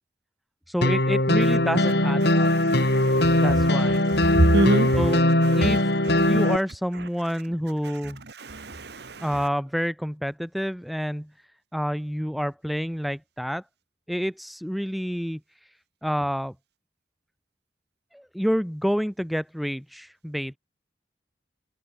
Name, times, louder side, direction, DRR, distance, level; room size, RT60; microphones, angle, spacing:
voice 1, 0.7-2.5 3.4-4.0 4.9-5.2 5.5-8.2 9.2-11.3 11.7-13.6 14.1-15.7 16.0-16.5 18.1-20.6, equal, ahead, 6.9 m, -28 dB
sound 1, 0.8-6.6, left 1 dB, 65° left, 7.6 m, -20 dB
voice 2, 2.7-3.4 4.3-4.9 6.2-6.3 8.5-9.2, right 1 dB, 65° right, 1.8 m, -24 dB
head